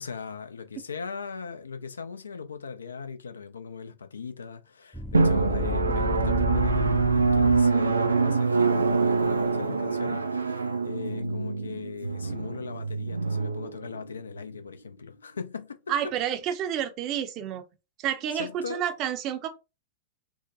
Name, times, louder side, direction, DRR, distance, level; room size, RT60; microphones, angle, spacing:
voice 1, 0.0-6.8 7.1-15.8 16.0-16.1 18.3-18.8, left 5 dB, 75° left, 0.4 m, -39 dB
sound 1, 4.9-7.9, left 2 dB, 5° left, 0.4 m, -32 dB
Drum, 5.1-14.4, right 4 dB, 85° right, 0.3 m, -25 dB
voice 2, 15.9-17.6 18.0-19.5, right 9 dB, 40° right, 0.6 m, -29 dB
2.7 x 2.1 x 3.8 m
figure-of-eight pair, 95°, 0 cm